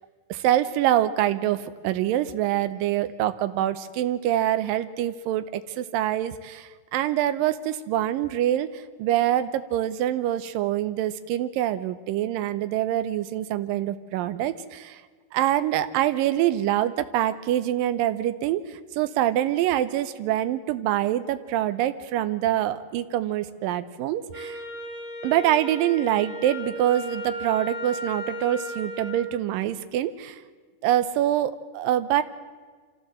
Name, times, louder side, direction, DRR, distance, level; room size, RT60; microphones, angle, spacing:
voice 1, 0.3-15.0 15.3-24.6 25.2-30.4 30.8-32.2, right 12 dB, 85° right, 11 dB, 2.5 m, -25 dB
Wind instrument woodwind instrument, 24.3-29.2, equal, 65° right, 5.0 m, -35 dB
26.5 x 15.0 x 7.6 m, 1.5 s
omnidirectional pair, 4.0 m